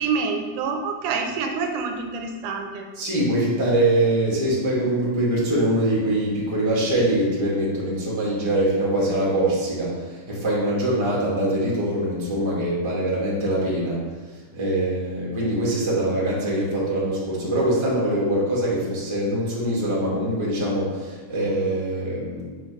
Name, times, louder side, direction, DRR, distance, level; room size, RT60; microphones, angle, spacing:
voice 1, 0.0-2.9, right 5 dB, 85° right, 4 dB, 2.1 m, -27 dB
voice 2, 2.9-14.0 14.5-22.4, right 1 dB, 15° right, -6 dB, 1.1 m, -23 dB
5.8 x 5.1 x 4.9 m, 1.3 s
omnidirectional pair, 3.6 m